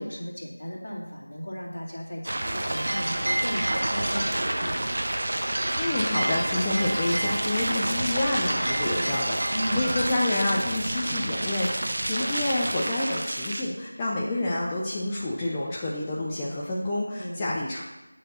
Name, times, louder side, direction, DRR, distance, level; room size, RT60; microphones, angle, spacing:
voice 1, 0.0-5.0 9.5-10.1 17.2-17.5, equal, 55° left, -2 dB, 2.3 m, -35 dB
sound 1, 2.2-13.6, right 1 dB, 50° right, 0.9 m, -29 dB
sound 2, 2.4-12.8, right 1 dB, 70° right, 1.6 m, -34 dB
voice 2, 5.8-17.8, left 1 dB, 15° left, -5 dB, 0.6 m, -28 dB
8.6 x 4.5 x 6.2 m, 1.1 s
figure-of-eight pair, 170°, 0 cm